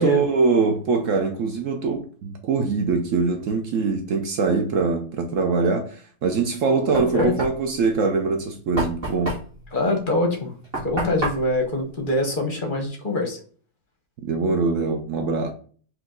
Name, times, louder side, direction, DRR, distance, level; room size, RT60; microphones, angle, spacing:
voice 1, 0.0-9.3 14.2-15.5, right 4 dB, 65° right, 0.8 m, -23 dB
Knock, 6.4-12.9, right 1 dB, 35° right, 1.8 m, -32 dB
voice 2, 9.7-10.5 10.8-13.4, left 2 dB, 40° left, 0.8 m, -24 dB
4.6 x 2.6 x 3.7 m
omnidirectional pair, 1.9 m